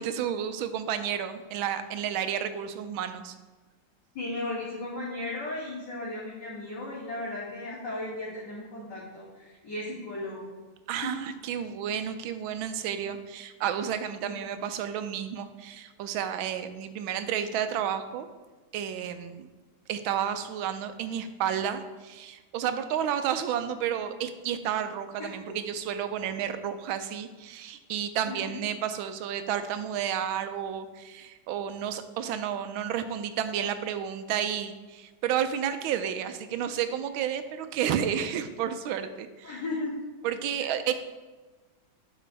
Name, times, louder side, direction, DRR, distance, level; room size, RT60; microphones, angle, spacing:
voice 1, 0.0-3.3 10.9-18.3 18.7-19.5 19.9-39.6 40.2-40.9, right 9 dB, 80° right, 9 dB, 1.4 m, -31 dB
voice 2, 4.1-10.5 11.0-11.1 14.2-14.3 25.2-25.3 28.3-28.6 39.4-39.9, left 2 dB, 60° left, -11 dB, 3.1 m, -35 dB
11.5 x 5.5 x 3.4 m, 1.3 s
omnidirectional pair, 2.2 m